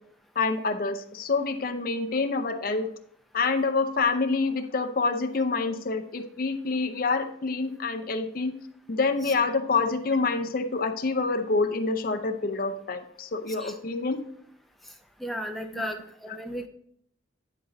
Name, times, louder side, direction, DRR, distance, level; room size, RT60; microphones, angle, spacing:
voice 1, 0.4-2.9 3.3-8.6 8.9-14.2 15.7-15.9, left 4 dB, 50° left, 7 dB, 0.5 m, -27 dB
voice 2, 15.2-16.7, equal, ahead, 4 dB, 0.5 m, -35 dB
9.5 x 3.8 x 3.9 m, 0.68 s
head